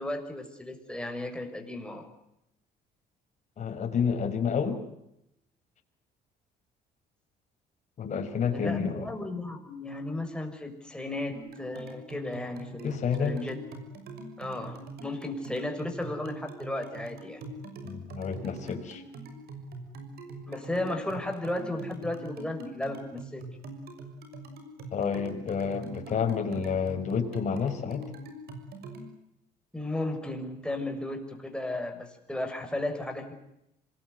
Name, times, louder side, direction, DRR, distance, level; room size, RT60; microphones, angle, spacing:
voice 1, 0.0-2.1 8.5-13.6 14.4-17.4 20.5-23.4 29.7-33.3, left 1 dB, 5° left, 3 dB, 6.3 m, -34 dB
voice 2, 3.6-4.8 8.0-9.1 12.8-13.4 17.8-19.0 24.9-28.0, left 6 dB, 45° left, 3 dB, 5.4 m, -29 dB
sound 1, 11.3-29.1, right 2 dB, 70° right, 6.4 m, -43 dB
26.5 x 20.5 x 9.6 m, 0.82 s
cardioid pair, 110°, 17 cm